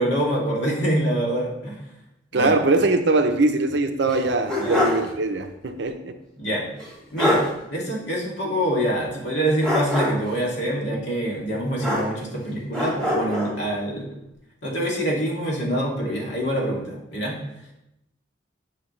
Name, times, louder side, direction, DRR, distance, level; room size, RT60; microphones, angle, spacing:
voice 1, 0.0-1.8 2.3-2.5 4.6-4.8 6.4-6.7 7.1-7.5 7.7-14.1 14.6-17.4, right 1 dB, 60° left, -3 dB, 2.3 m, -25 dB
voice 2, 2.3-6.2, right 2 dB, 60° right, 7 dB, 0.6 m, -22 dB
sound 1, 4.1-5.1 5.4-5.5 6.8-6.9 7.2-7.5 9.6-10.3 11.8-12.4 12.7-13.5, left 1 dB, 5° left, 1.9 m, -24 dB
8.7 x 6.1 x 3.2 m, 0.83 s
head